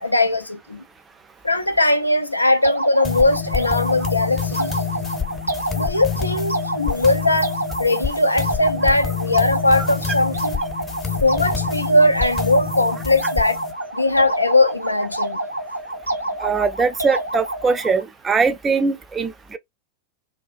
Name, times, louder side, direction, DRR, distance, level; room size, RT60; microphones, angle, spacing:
voice 1, 0.0-0.8 1.4-4.7 5.8-10.6 11.2-13.6 13.9-15.4, left 2 dB, 85° left, 0.4 m, -19 dB
sound 1, 2.6-18.0, right 1 dB, 85° right, 0.5 m, -28 dB
sound 2, 3.0-13.7, left 7 dB, 20° left, 0.7 m, -28 dB
voice 2, 16.4-19.6, right 4 dB, 20° right, 0.4 m, -21 dB
2.4 x 2.2 x 2.4 m
figure-of-eight pair, 90°, 0 cm